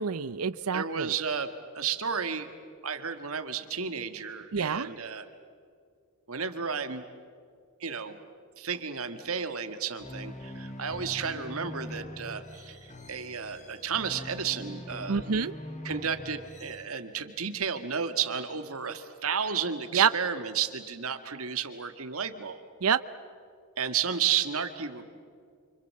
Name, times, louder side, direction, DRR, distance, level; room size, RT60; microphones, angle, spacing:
voice 1, 0.0-1.1 4.5-4.9 15.1-15.5 19.9-20.1 22.8-23.0, right 6 dB, 85° right, 15 dB, 0.7 m, -26 dB
voice 2, 0.7-2.5 2.8-5.3 6.3-7.0 7.8-8.2 8.6-15.2 15.8-22.6 23.8-25.0, right 7 dB, 70° right, 8 dB, 1.8 m, -32 dB
sound 1, 10.0-16.8, left 1 dB, 35° left, 2.2 m, -42 dB
29.0 x 26.0 x 7.6 m, 2.2 s
head